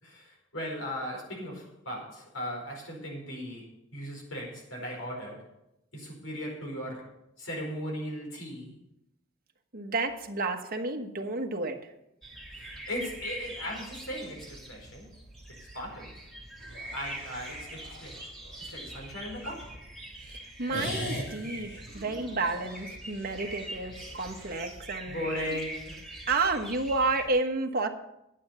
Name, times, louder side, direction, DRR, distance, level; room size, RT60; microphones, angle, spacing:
voice 1, 0.0-5.5 5.9-7.1 7.4-8.8 12.5-15.1 15.7-16.2 16.9-18.2 18.6-19.8 25.1-26.0, equal, 80° left, -1 dB, 4.7 m, -38 dB
voice 2, 9.7-11.8 20.3-25.6 26.3-27.9, right 3 dB, 45° right, 4 dB, 1.3 m, -31 dB
sound 1, 12.2-27.3, right 1 dB, 5° left, 2.4 m, -44 dB
sound 2, 16.6-19.7 20.7-24.8, left 1 dB, 60° left, 4.5 m, -42 dB
11.5 x 8.6 x 6.7 m, 0.84 s
head